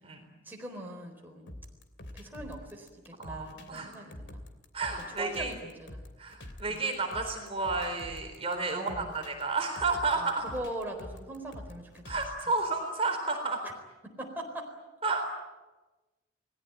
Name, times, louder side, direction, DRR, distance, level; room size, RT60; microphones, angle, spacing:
voice 1, 0.4-1.5 2.1-4.4 5.0-6.0 6.7-6.9 8.7-9.3 10.2-11.9 13.6-13.7 14.0-14.7, right 1 dB, 10° right, 0 dB, 4.2 m, -41 dB
sound 1, 1.5-12.6, left 1 dB, 65° left, 3.0 m, -46 dB
voice 2, 3.2-4.0 4.7-5.6 6.2-10.4 12.1-13.6 15.0-15.3, right 3 dB, 30° right, 4 dB, 4.0 m, -31 dB
29.5 x 19.5 x 9.1 m, 1.1 s
head